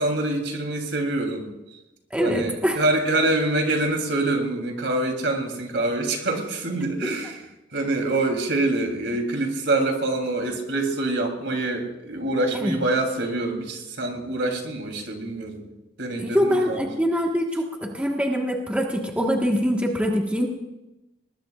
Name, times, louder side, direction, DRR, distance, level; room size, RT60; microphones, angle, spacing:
voice 1, 0.0-1.5 2.2-15.6 16.0-16.9, right 2 dB, 70° right, 3 dB, 3.3 m, -25 dB
voice 2, 2.1-2.8 7.0-7.1 12.5-12.7 16.2-20.5, equal, 5° right, 0 dB, 1.5 m, -24 dB
21.5 x 20.5 x 2.5 m, 0.97 s
head